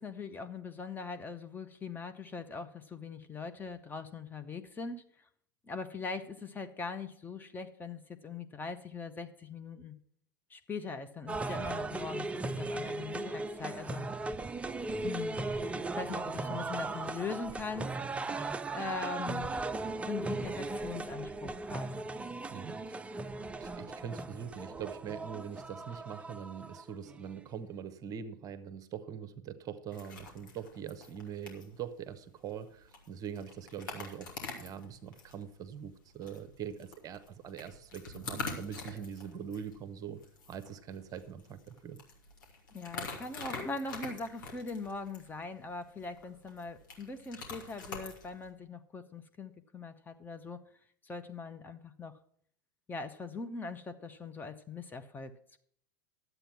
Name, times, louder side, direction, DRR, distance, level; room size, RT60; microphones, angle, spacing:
voice 1, 0.0-5.0 5.6-10.0 10.5-14.1 15.0-17.9 18.7-19.5 20.0-22.1 42.7-50.6 51.0-52.1 52.9-55.6, left 4 dB, 15° left, 7 dB, 0.8 m, -41 dB
sound 1, 11.3-27.3, right 3 dB, 10° right, 0.4 m, -37 dB
voice 2, 22.5-40.2 40.5-42.0, right 8 dB, 35° right, 11 dB, 0.9 m, -43 dB
sound 2, 29.9-48.5, left 4 dB, 65° left, 2.5 m, -46 dB
11.5 x 8.0 x 5.9 m, 0.63 s
figure-of-eight pair, 85°, 11 cm